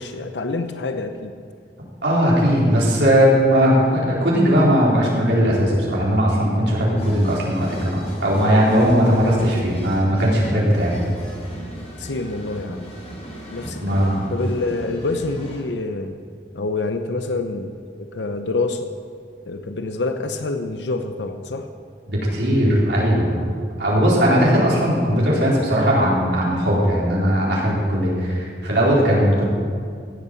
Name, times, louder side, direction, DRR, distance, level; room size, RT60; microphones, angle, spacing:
voice 1, 0.0-1.3 12.0-12.9 13.5-16.2 16.5-18.9 19.5-21.7, left 3 dB, 80° left, 7 dB, 0.8 m, -27 dB
voice 2, 2.0-11.0 13.8-14.3 22.1-23.4 23.8-29.4, equal, 75° right, -5 dB, 4.3 m, -18 dB
sound 1, 7.0-15.6, right 1 dB, 35° left, 3.7 m, -36 dB
16.0 x 8.6 x 7.1 m, 2.2 s
head